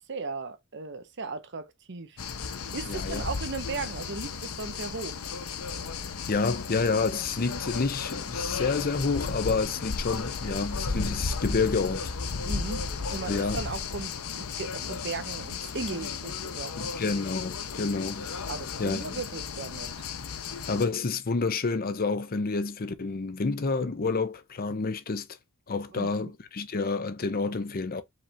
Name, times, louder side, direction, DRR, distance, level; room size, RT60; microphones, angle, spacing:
voice 1, 0.1-2.2 2.7-5.2 12.4-16.9 18.5-19.9 25.9-26.3, right 4 dB, 55° right, 0.8 m, -37 dB
sound 1, 2.2-20.8, left 5 dB, 80° left, 0.7 m, -34 dB
voice 2, 2.9-3.2 6.3-12.1 13.3-13.6 16.8-18.3 18.8-19.2 20.7-25.3 25.7-28.0, left 4 dB, 45° left, 0.6 m, -29 dB
4.9 x 3.3 x 2.8 m
head